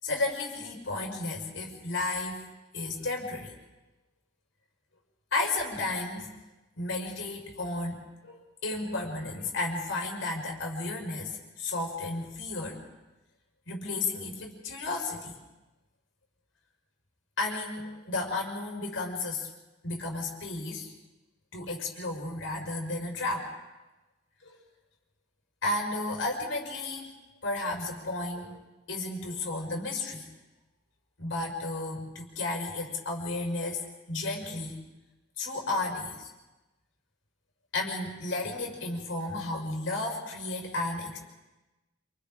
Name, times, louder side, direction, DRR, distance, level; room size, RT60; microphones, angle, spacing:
voice 1, 0.0-3.5 5.3-6.3 6.8-12.8 13.7-15.4 17.4-19.5 19.8-20.9 21.5-23.5 24.4-24.6 25.6-27.1 27.4-28.6 28.9-30.3 31.2-34.8 35.4-36.3 37.7-41.2, left 2 dB, 85° left, 0 dB, 5.3 m, -33 dB
28.5 x 27.5 x 3.8 m, 1.1 s
head